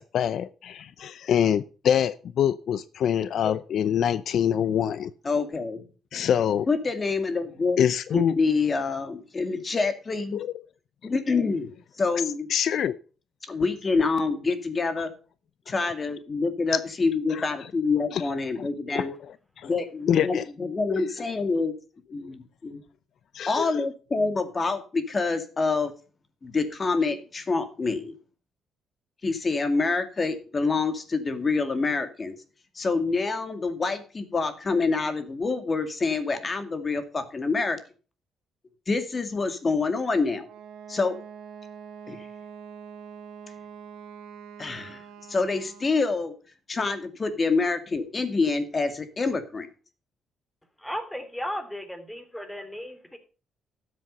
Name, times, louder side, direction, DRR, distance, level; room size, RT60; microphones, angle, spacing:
voice 1, 0.0-5.1 6.1-6.7 7.8-8.3 10.3-10.5 12.5-13.0 17.3-17.5 18.1-18.2 18.6-18.7 18.9-19.1 19.6-19.7 20.1-20.4 20.9-21.0 23.3-23.8, left 9 dB, 65° left, 16 dB, 0.6 m, -25 dB
voice 2, 5.2-5.8 6.7-7.8 8.1-10.4 11.0-11.7 12.0-12.5 13.4-15.1 15.7-19.1 19.6-21.7 22.1-22.8 23.5-25.9 26.4-28.1 29.2-32.4 32.8-37.8 38.9-40.5 40.9-41.2 42.1-42.3 44.6-45.0 45.3-46.3 46.7-49.7, left 4 dB, 35° left, 9 dB, 2.2 m, -26 dB
Wind instrument woodwind instrument, 40.4-46.1, right 7 dB, 85° right, 1.8 m, -44 dB
voice 3, 50.8-53.2, equal, 5° left, 8 dB, 2.9 m, -35 dB
13.0 x 7.8 x 5.3 m, 0.37 s
cardioid pair, 90°, 0 cm